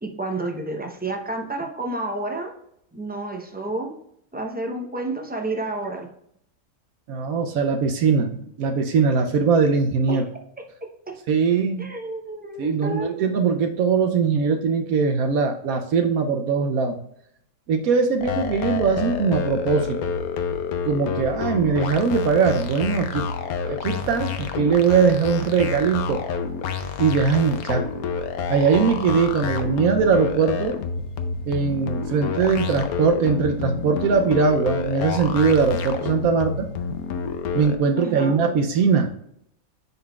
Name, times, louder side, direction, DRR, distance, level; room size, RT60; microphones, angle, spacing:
voice 1, 0.0-2.5 2.9-4.0 4.3-6.1 10.1-10.2 11.1-11.2 11.8-13.3 38.0-38.4, right 2 dB, 10° right, 2 dB, 0.5 m, -30 dB
voice 2, 7.1-10.2 11.3-11.9 12.6-17.0 17.7-20.1 20.8-23.3 23.7-26.2 27.0-27.8 28.5-30.8 31.4-36.7 37.5-39.1, right 5 dB, 75° right, 5 dB, 1.1 m, -21 dB
sound 1, 18.2-37.8, left 5 dB, 85° left, 1.2 m, -29 dB
11.0 x 3.9 x 2.3 m, 0.72 s
omnidirectional pair, 1.5 m